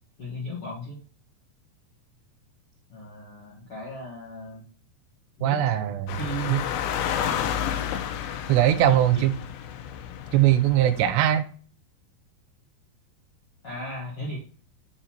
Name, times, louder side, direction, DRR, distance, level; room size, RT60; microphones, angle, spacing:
voice 1, 0.2-1.0 2.9-4.6 5.4-5.6 6.2-6.7 8.7-9.3 11.0-11.2 13.6-14.4, right 1 dB, 45° left, -7 dB, 2.0 m, -35 dB
voice 2, 5.4-6.2 6.5-6.6 8.5-9.4 10.3-11.5, right 12 dB, 80° right, 10 dB, 2.8 m, -21 dB
sound 1, 6.1-11.1, left 9 dB, 85° left, 2.9 m, -31 dB
6.8 x 3.9 x 4.3 m, 0.41 s
omnidirectional pair, 5.0 m